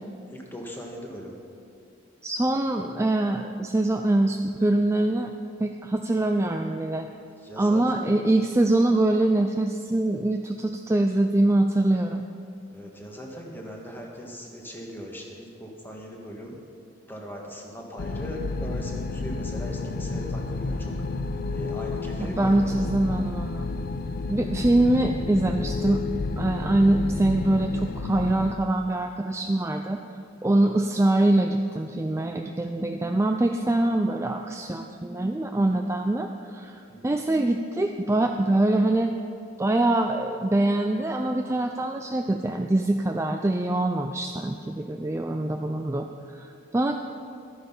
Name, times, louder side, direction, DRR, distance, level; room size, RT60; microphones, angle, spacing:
voice 1, 0.3-1.3 7.4-8.1 12.7-16.6 17.1-21.0 21.5-22.9 36.9-37.2, equal, 10° left, 0 dB, 1.5 m, -40 dB
voice 2, 2.2-5.3 5.6-7.1 7.6-12.2 22.2-23.7 24.3-26.0 26.4-30.0 30.4-39.1 39.6-47.0, right 1 dB, 15° right, 4 dB, 0.3 m, -24 dB
sound 1, 18.0-28.5, left 3 dB, 50° left, 0.6 m, -31 dB
12.5 x 9.7 x 5.6 m, 2.6 s
head